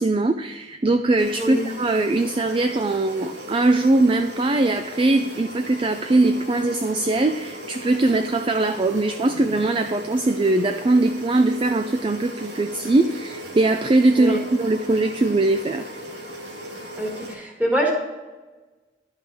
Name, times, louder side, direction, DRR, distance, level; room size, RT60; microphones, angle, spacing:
voice 1, 0.0-15.9, right 2 dB, 30° right, 8 dB, 0.4 m, -21 dB
sound 1, 1.2-17.3, equal, 85° right, 2.2 m, -37 dB
voice 2, 17.0-17.9, equal, 10° right, -2 dB, 1.9 m, -24 dB
11.0 x 5.7 x 4.9 m, 1.2 s
head